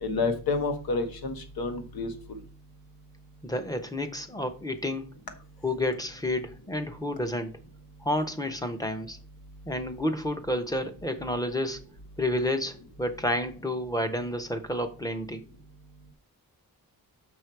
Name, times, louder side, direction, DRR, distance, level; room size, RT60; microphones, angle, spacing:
voice 1, 0.0-2.1, left 3 dB, 80° left, 7 dB, 1.6 m, -29 dB
voice 2, 3.4-5.1 5.6-7.5 8.0-9.2 9.7-11.8 12.2-15.4, left 1 dB, 10° left, 8 dB, 0.8 m, -30 dB
6.3 x 6.0 x 4.6 m, 0.35 s
wide cardioid pair, 175°, 35 cm